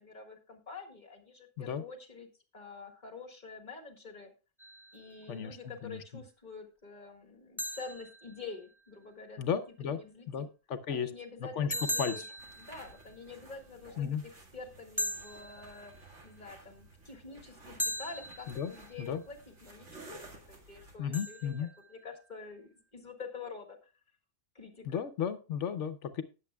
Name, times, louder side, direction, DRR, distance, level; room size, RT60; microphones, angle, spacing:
voice 1, 0.0-2.3 2.5-4.3 4.9-10.5 10.9-12.2 12.5-14.2 14.5-15.9 16.2-23.9 24.6-25.0, left 4 dB, 40° left, 3 dB, 1.9 m, -47 dB
sound 1, 4.6-5.4 7.6-9.0 11.7-13.5 15.0-16.4 17.8-19.2 21.1-22.3, equal, 5° right, 0.4 m, -40 dB
voice 2, 5.3-6.0 9.4-10.0 10.3-11.1 11.4-12.1 14.0-14.2 18.5-18.7 19.0-19.2 21.0-21.7 24.8-26.2, left 7 dB, 75° left, 10 dB, 1.1 m, -34 dB
sound 2, 12.4-21.0, right 2 dB, 75° right, 2.4 m, -54 dB
19.0 x 7.4 x 2.3 m, 0.32 s
omnidirectional pair, 1.3 m